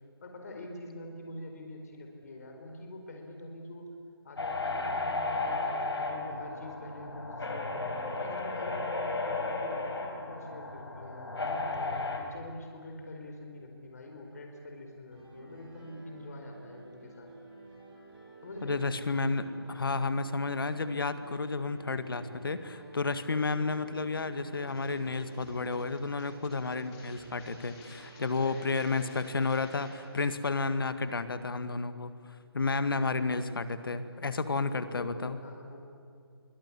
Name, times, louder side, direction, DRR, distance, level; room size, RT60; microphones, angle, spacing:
voice 1, 0.2-3.9 4.2-17.3 18.4-18.9 28.4-29.4 32.7-33.3 34.7-35.8, left 1 dB, 40° left, 3 dB, 4.1 m, -46 dB
sound 1, 4.4-12.2, left 3 dB, 75° left, 5.1 m, -34 dB
Piano, 15.1-28.8, right 2 dB, 10° right, 6.8 m, -51 dB
voice 2, 18.6-32.1 32.5-35.4, left 3 dB, 60° left, 11 dB, 1.9 m, -31 dB
sound 2, 24.7-30.3, left 3 dB, 15° left, 4.1 m, -55 dB
28.5 x 24.0 x 8.5 m, 2.3 s
figure-of-eight pair, 170°, 13 cm